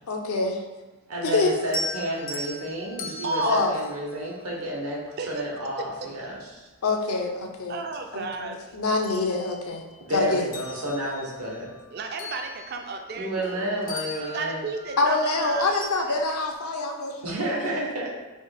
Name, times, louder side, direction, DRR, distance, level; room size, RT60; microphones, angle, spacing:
voice 1, 0.1-0.6 1.2-1.6 3.4-3.7 6.8-7.8 8.1-9.8 10.1-10.5 15.0-17.3 17.6-17.7, left 3 dB, 80° left, 3 dB, 0.6 m, -25 dB
voice 2, 1.1-5.0 5.3-6.4 10.1-11.7 13.2-14.6 17.2-18.1, right 1 dB, 85° right, -3 dB, 1.1 m, -30 dB
sound 1, 1.6-4.9 6.6-6.7 7.2-8.4 8.8-10.0 10.4-13.6 13.9-16.5, left 1 dB, 35° left, 0.3 m, -39 dB
voice 3, 3.2-3.6 5.2-5.4 7.7-8.6 11.9-13.7 14.3-15.7 16.1-16.2, right 3 dB, 45° right, 4 dB, 0.4 m, -32 dB
3.4 x 2.8 x 4.5 m, 1.2 s
head